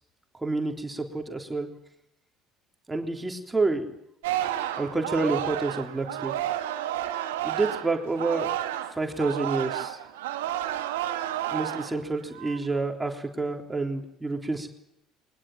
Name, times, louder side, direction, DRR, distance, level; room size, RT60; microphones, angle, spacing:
voice 1, 0.4-1.7 2.9-3.9 4.8-6.4 7.4-8.5 8.9-10.0 11.5-14.7, right 3 dB, 15° right, 3 dB, 3.4 m, -28 dB
Singing, 4.2-8.9 9.2-12.0 12.4-12.7, right 12 dB, 80° right, 1.7 m, -31 dB
22.0 x 20.0 x 9.1 m, 0.78 s
hypercardioid pair, 65°, 0 cm